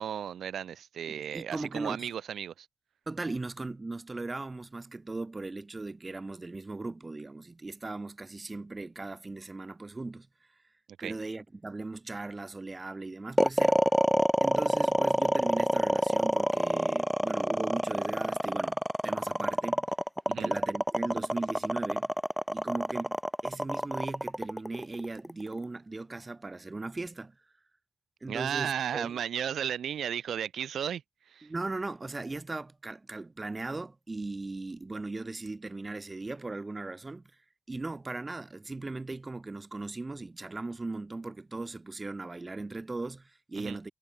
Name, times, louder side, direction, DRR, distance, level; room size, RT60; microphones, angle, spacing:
voice 1, 0.0-2.7 11.0-11.1 20.3-20.5 28.3-31.5 43.6-43.8, right 9 dB, 80° right, 1.2 m, -34 dB
voice 2, 1.1-2.1 3.1-10.3 11.0-13.9 14.4-19.9 20.3-22.1 22.5-23.2 23.4-27.4 28.2-29.2 31.4-37.4 37.7-43.9, right 3 dB, 20° right, 1.4 m, -38 dB
sound 1, 13.4-25.6, equal, ahead, 0.3 m, -27 dB
wide cardioid pair, 135°, 0 cm